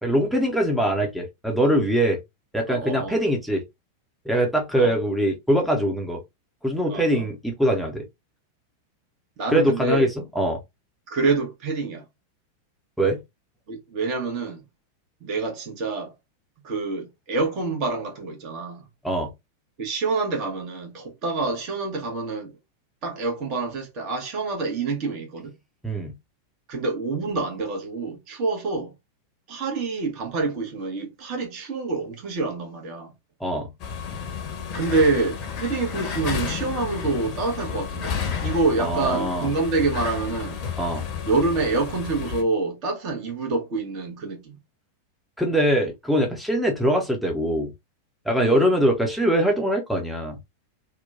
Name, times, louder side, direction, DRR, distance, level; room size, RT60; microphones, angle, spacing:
voice 1, 0.0-2.2 2.5-3.6 4.3-6.2 6.6-8.1 9.5-10.1 10.3-10.6 13.0-13.2 19.0-19.3 25.8-26.1 33.4-33.7 38.8-39.5 40.8-41.1 45.4-47.7 48.3-50.4, right 1 dB, ahead, 0.6 m, -22 dB
voice 2, 2.7-3.2 4.8-4.9 6.9-7.2 9.4-10.1 11.1-12.0 13.7-14.6 15.2-16.1 16.6-18.8 19.8-22.5 23.0-25.5 26.7-28.9 29.5-33.1 34.7-38.1 38.4-40.6 41.2-44.6 48.4-48.7, right 3 dB, 40° right, 1.0 m, -27 dB
sound 1, 33.8-42.4, left 7 dB, 40° left, 0.7 m, -31 dB
2.9 x 2.2 x 2.3 m
figure-of-eight pair, 90°, 0 cm